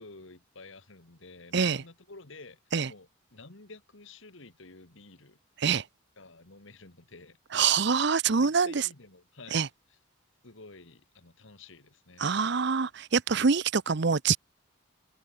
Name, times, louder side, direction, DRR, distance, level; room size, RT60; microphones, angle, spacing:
voice 1, 0.0-5.4 6.2-7.4 8.3-9.6 9.9-10.0 10.4-12.6, left 3 dB, 65° left, 2.1 m, -51 dB
voice 2, 7.5-8.9 9.5-9.7 12.2-14.4, right 5 dB, 55° right, 0.7 m, -25 dB
head